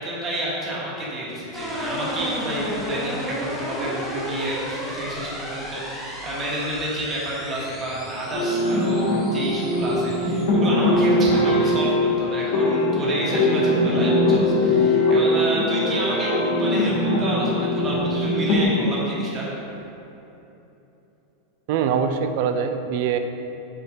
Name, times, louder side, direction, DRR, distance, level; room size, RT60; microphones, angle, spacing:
voice 1, 0.0-19.5, right 1 dB, 20° right, -6 dB, 1.3 m, -29 dB
sound 1, 1.5-10.5, equal, 5° left, 1.0 m, -34 dB
sound 2, 8.3-18.6, left 1 dB, 55° left, 1.4 m, -21 dB
voice 2, 21.7-23.2, right 7 dB, 45° right, 7 dB, 0.4 m, -23 dB
6.3 x 4.4 x 4.8 m, 3.0 s
supercardioid pair, 175°, 0 cm